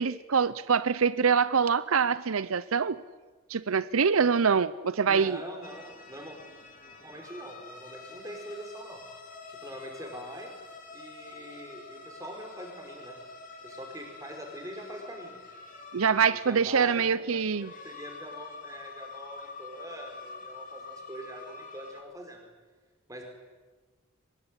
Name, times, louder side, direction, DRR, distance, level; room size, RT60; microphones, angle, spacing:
voice 1, 0.0-3.0 3.5-5.4 15.9-17.7, right 6 dB, 85° right, 16 dB, 0.7 m, -25 dB
voice 2, 5.1-6.4 7.0-9.0 9.5-10.5 10.9-13.2 13.6-15.4 16.3-22.5 23.1-23.2, right 1 dB, 15° right, 2 dB, 5.2 m, -43 dB
sound 1, 5.6-22.0, left 4 dB, 40° left, 3.3 m, -47 dB
24.0 x 20.0 x 9.9 m, 1.3 s
head